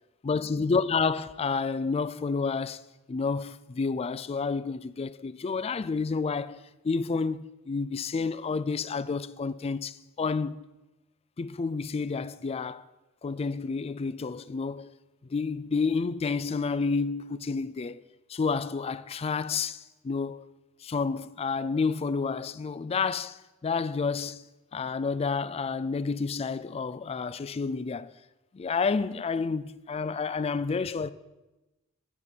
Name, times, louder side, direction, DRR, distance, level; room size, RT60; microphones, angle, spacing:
voice 1, 0.2-2.8 3.1-10.7 11.4-12.8 13.2-14.9 15.3-18.0 18.3-20.5 20.8-24.4 24.7-28.1 28.5-31.1, left 4 dB, 30° left, 0.3 m, -30 dB
11.0 x 6.0 x 7.3 m
head